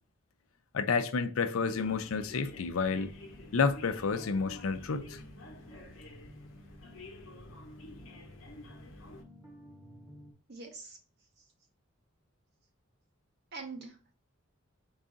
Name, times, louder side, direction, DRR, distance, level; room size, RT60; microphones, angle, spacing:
voice 1, 0.7-3.1 3.5-5.2, left 5 dB, 90° left, 0.5 m, -30 dB
sound 1, 0.9-10.3, left 1 dB, 15° right, 1.0 m, -54 dB
sound 2, 1.7-9.2, left 2 dB, 75° left, 0.9 m, -51 dB
voice 2, 10.5-11.0 13.5-14.1, right 4 dB, 50° right, 1.0 m, -44 dB
4.6 x 2.5 x 3.8 m
head